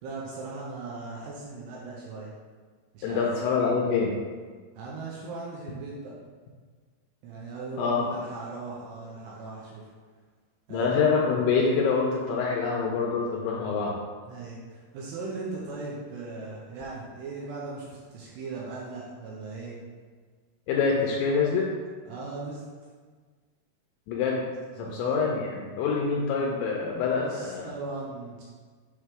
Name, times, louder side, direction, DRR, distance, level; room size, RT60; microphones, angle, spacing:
voice 1, 0.0-2.3 2.9-3.3 4.8-6.1 7.2-9.9 10.7-10.9 14.3-19.7 22.1-22.6 24.8-25.2 26.0-26.2 27.2-28.4, right 3 dB, 80° right, -4 dB, 2.6 m, -38 dB
voice 2, 3.0-4.2 7.8-8.1 10.7-14.0 20.7-21.7 24.1-24.4 24.8-27.7, left 5 dB, 80° left, -2 dB, 2.8 m, -26 dB
7.5 x 3.1 x 4.8 m, 1.5 s
omnidirectional pair, 5.5 m